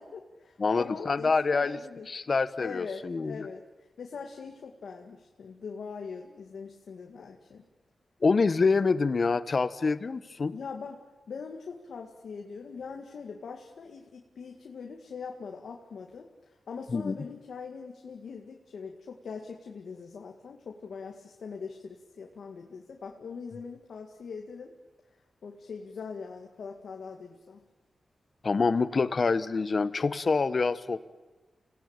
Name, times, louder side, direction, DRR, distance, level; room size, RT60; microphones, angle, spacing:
voice 1, 0.0-2.1 2.6-7.6 10.5-11.0 11.3-24.7 25.4-27.6, left 5 dB, 80° left, 2 dB, 2.1 m, -42 dB
voice 2, 0.6-1.8 2.1-3.5 8.2-10.5 16.9-17.2 28.4-31.0, left 4 dB, 50° left, 14 dB, 1.1 m, -26 dB
28.5 x 18.0 x 8.9 m, 1.2 s
wide cardioid pair, 85°, 0 cm